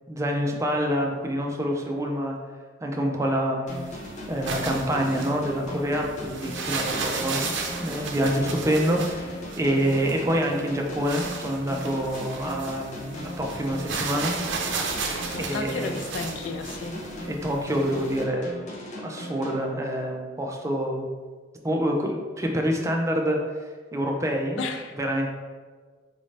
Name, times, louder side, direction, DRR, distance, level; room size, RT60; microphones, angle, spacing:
voice 1, 0.1-2.4 2.8-3.8 4.3-9.2 9.6-14.4 15.4-16.0 17.2-18.5 19.0-21.1 21.6-23.4 23.9-24.6 25.0-25.3, equal, 15° right, 1 dB, 0.4 m, -26 dB
sound 1, 3.7-20.3, left 1 dB, 40° left, 0.6 m, -39 dB
sound 2, 3.7-18.2, right 4 dB, 70° right, 0.5 m, -34 dB
voice 2, 15.3-17.0 24.6-25.0, left 4 dB, 80° left, 5 dB, 0.3 m, -33 dB
4.1 x 2.6 x 3.1 m, 1.5 s
head